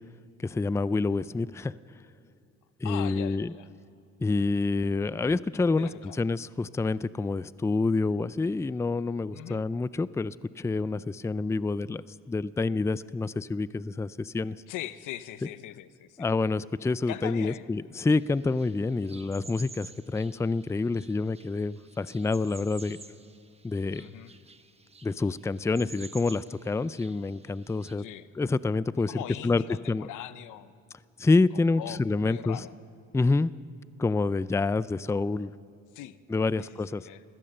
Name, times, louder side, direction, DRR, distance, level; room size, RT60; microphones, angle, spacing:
voice 1, 0.4-1.7 2.8-3.5 4.2-5.9 6.2-14.6 16.2-23.0 23.6-24.1 25.0-28.0 28.4-29.2 29.4-29.6 29.9-30.1 31.2-32.7 33.1-33.5 34.0-35.5 36.3-37.1, left 3 dB, 10° left, 17 dB, 0.4 m, -27 dB
voice 2, 2.8-3.7 5.8-6.2 9.3-9.6 14.7-16.3 17.1-17.7 23.9-24.3 28.0-28.3 29.1-30.7 31.8-32.7 35.9-36.2 36.6-37.2, left 13 dB, 85° left, 14 dB, 0.8 m, -41 dB
sound 1, 18.1-27.9, right 3 dB, 20° right, 1.1 m, -51 dB
26.0 x 16.5 x 6.7 m, 2.5 s
cardioid pair, 90°, 30 cm